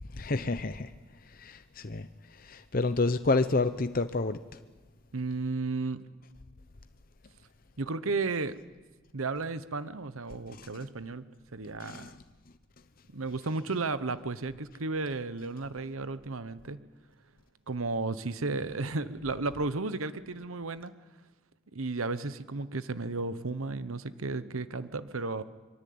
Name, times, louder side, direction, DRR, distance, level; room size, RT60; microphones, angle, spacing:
voice 1, 0.1-0.9 1.2-4.4 10.5-10.7 11.8-12.2, left 3 dB, 40° left, 0.7 m, -30 dB
voice 2, 5.1-6.0 7.8-8.6 9.1-11.2 11.5-12.1 13.1-16.8 17.7-20.9 21.7-25.4, right 3 dB, 80° right, 1.0 m, -33 dB
24.5 x 23.0 x 8.6 m
head